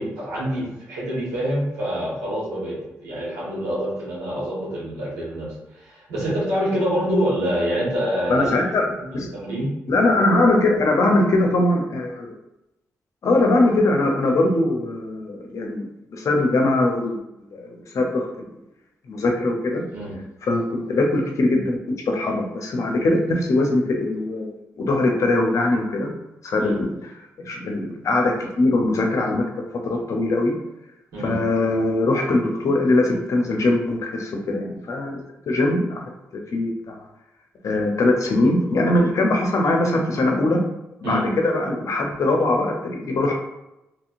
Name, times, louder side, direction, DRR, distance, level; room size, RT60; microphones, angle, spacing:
voice 1, 0.0-5.5 5.7-8.7 9.1-9.7 19.9-20.1 26.6-26.8 31.1-31.4 41.0-41.3, equal, 90° right, -8 dB, 1.4 m, -26 dB
voice 2, 8.3-9.3 9.9-12.3 13.2-17.2 17.5-18.3 19.1-19.8 20.4-21.8 22.1-26.1 26.4-27.1 27.4-29.4 29.8-30.5 31.2-35.2 35.5-37.0 37.6-40.6 41.0-43.4, left 2 dB, 60° left, 2 dB, 0.7 m, -21 dB
3.0 x 2.8 x 2.6 m, 0.92 s
supercardioid pair, 50°, 6 cm